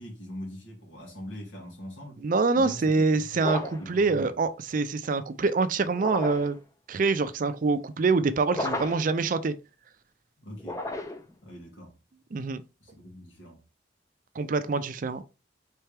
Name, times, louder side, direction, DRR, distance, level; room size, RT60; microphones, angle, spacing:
voice 1, 0.0-2.2 2.5-3.4 3.8-4.4 10.4-10.8 11.4-12.0 12.8-13.6, equal, 85° left, 1.8 m, -42 dB
voice 2, 2.2-6.6 6.9-9.6 12.3-12.6 14.4-15.2, right 4 dB, 45° right, 0.4 m, -25 dB
sound 1, 3.4-3.9 5.9-6.6 8.5-9.2 10.6-11.3, left 2 dB, 15° left, 0.5 m, -33 dB
4.4 x 3.4 x 3.3 m
head